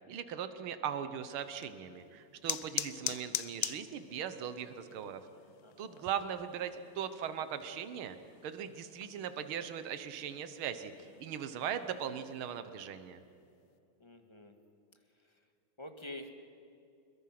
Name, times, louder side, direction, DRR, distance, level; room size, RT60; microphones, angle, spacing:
voice 1, 0.1-5.2 5.8-8.2 8.4-13.2, right 8 dB, 80° right, 10 dB, 1.9 m, -39 dB
sound 1, 1.4-12.6, left 13 dB, 70° left, 1.4 m, -44 dB
voice 2, 5.6-6.1 14.0-14.5 15.8-16.3, left 1 dB, 15° left, 5 dB, 1.6 m, -47 dB
26.5 x 22.0 x 6.0 m, 2.6 s
omnidirectional pair, 2.3 m